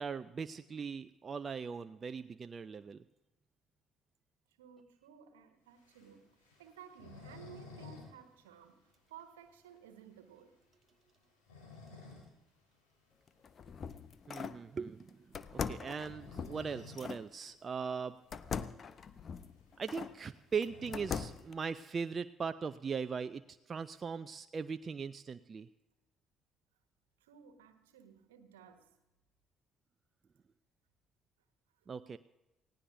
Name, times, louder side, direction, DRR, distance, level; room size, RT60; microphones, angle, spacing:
voice 1, 0.0-3.0 14.3-15.2 15.5-18.1 19.8-25.7 31.9-32.2, right 5 dB, 40° right, 0.5 m, -39 dB
voice 2, 4.6-10.6 27.2-28.9 31.8-31.9, right 8 dB, 80° right, 1.4 m, -56 dB
sound 1, 5.8-8.1 8.4-8.5 8.9-9.0 9.5-9.6 11.2-12.3 12.7-12.9 14.4-14.6 15.8-17.1 17.5-17.6 17.8-17.9 18.6-18.7 19.0-21.6, left 4 dB, 75° left, 4.1 m, -53 dB
sound 2, 13.3-14.6 15.3-17.2 18.3-20.2 20.6-21.5, left 6 dB, 45° left, 0.8 m, -41 dB
28.5 x 17.5 x 2.7 m
figure-of-eight pair, 45°, 0 cm